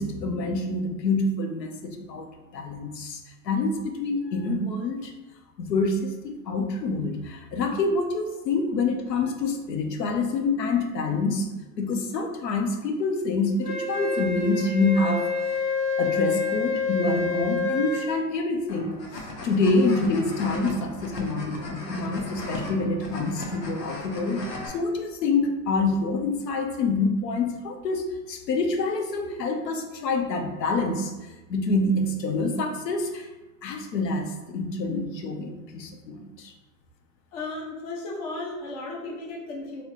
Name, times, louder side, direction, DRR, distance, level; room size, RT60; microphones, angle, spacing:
voice 1, 0.0-3.2 3.4-5.1 5.6-11.5 11.8-15.2 16.0-31.1 31.5-33.3 33.6-36.5, left 3 dB, 90° left, 4 dB, 0.8 m, -26 dB
Wind instrument woodwind instrument, 13.6-18.1, left 5 dB, 10° left, 1.2 m, -27 dB
sound 1, 18.7-24.7, left 2 dB, 75° left, 1.1 m, -38 dB
voice 2, 37.3-39.8, left 2 dB, 25° left, -2 dB, 0.3 m, -35 dB
4.0 x 2.2 x 3.0 m, 1.1 s
hypercardioid pair, 140°, 49 cm